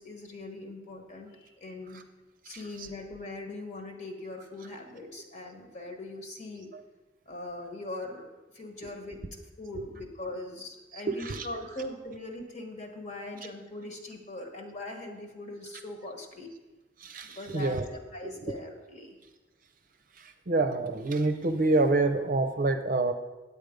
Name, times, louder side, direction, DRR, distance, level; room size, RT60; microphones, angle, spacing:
voice 1, 0.0-2.0 2.4-6.7 7.3-16.5 17.2-17.8 18.1-19.2, left 2 dB, 45° left, 3 dB, 1.3 m, -41 dB
voice 2, 2.5-2.9 6.7-6.8 8.8-8.9 9.7-9.9 10.9-11.8 17.0-17.9 18.2-18.5 20.2-23.1, right 2 dB, 50° right, 7 dB, 0.6 m, -28 dB
9.4 x 8.3 x 5.1 m, 1.1 s
head